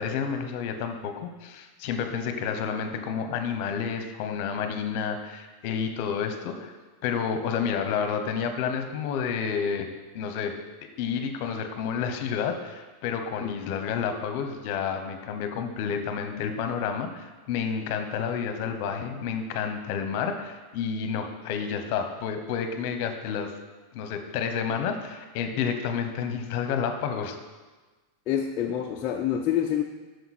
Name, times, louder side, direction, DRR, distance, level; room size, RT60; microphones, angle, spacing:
voice 1, 0.0-6.7 7.0-9.9 10.1-10.5 11.0-23.5 23.9-27.4, left 7 dB, 50° left, 7 dB, 1.0 m, -30 dB
voice 2, 28.3-29.8, left 10 dB, 35° left, 1 dB, 0.5 m, -27 dB
9.3 x 6.6 x 4.3 m, 1.3 s
supercardioid pair, 155°, 0 cm